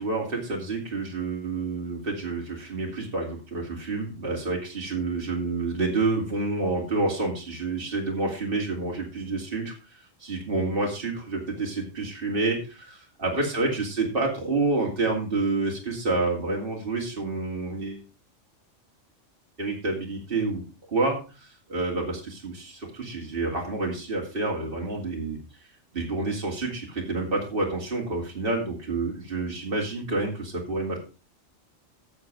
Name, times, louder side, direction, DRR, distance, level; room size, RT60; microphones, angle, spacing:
voice 1, 0.0-18.0 19.6-20.6 20.9-25.4 25.9-31.0, right 3 dB, 50° right, -1 dB, 2.9 m, -28 dB
11.5 x 7.2 x 4.7 m, 0.34 s
omnidirectional pair, 1.2 m